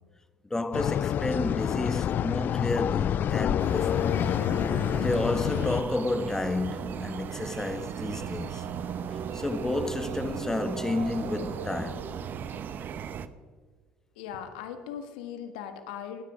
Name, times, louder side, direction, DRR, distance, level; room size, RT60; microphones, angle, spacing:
voice 1, 0.5-4.1 5.0-8.6 9.3-12.1, left 2 dB, 10° left, 1.3 m, -31 dB
sound 1, 0.7-5.8, left 10 dB, 50° left, 0.4 m, -27 dB
sound 2, 3.6-13.3, right 8 dB, 50° right, 0.9 m, -37 dB
sound 3, 6.1-12.6, right 5 dB, 70° right, 2.5 m, -46 dB
voice 2, 14.1-16.2, left 8 dB, 80° left, 1.6 m, -39 dB
20.5 x 9.8 x 5.0 m
hypercardioid pair, 75°, 4 cm